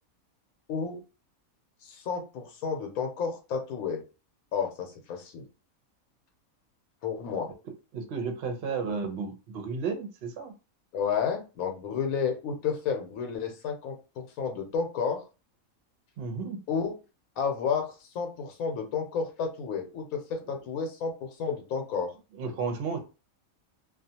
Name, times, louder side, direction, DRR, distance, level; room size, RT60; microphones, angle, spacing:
voice 1, 0.7-1.0 1.8-4.0 4.5-5.4 7.0-7.5 10.9-15.2 16.7-16.9 17.4-22.1, left 6 dB, 80° left, 3 dB, 1.1 m, -31 dB
voice 2, 7.9-10.5 16.2-16.6 22.3-23.0, right 5 dB, 55° right, 6 dB, 0.7 m, -33 dB
2.4 x 2.3 x 2.7 m, 0.31 s
omnidirectional pair, 1.5 m